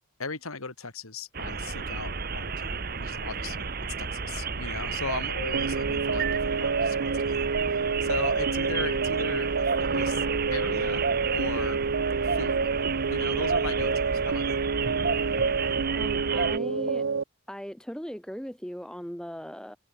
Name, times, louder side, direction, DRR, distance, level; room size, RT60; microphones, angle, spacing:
voice 1, 0.2-3.7 4.0-10.2 10.5-11.0 11.3-11.8 12.2-12.7 13.1-14.6, left 3 dB, 85° left, 3.1 m, -37 dB
sound 1, 1.3-16.6, right 5 dB, 45° right, 1.3 m, -31 dB
sound 2, 5.5-17.2, right 5 dB, 65° right, 0.6 m, -28 dB
voice 2, 15.9-17.1 17.5-19.8, equal, 5° left, 3.0 m, -38 dB
head